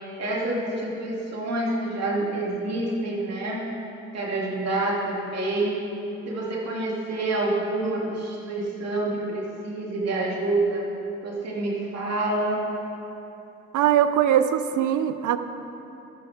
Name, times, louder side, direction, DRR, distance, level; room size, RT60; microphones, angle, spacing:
voice 1, 0.2-3.6 4.1-5.8 6.3-10.8 11.2-12.6, right 2 dB, 60° right, -3 dB, 2.8 m, -27 dB
voice 2, 13.7-15.4, right 10 dB, 75° right, 11 dB, 0.7 m, -21 dB
13.5 x 11.0 x 3.6 m, 3.0 s
cardioid pair, 90°, 30 cm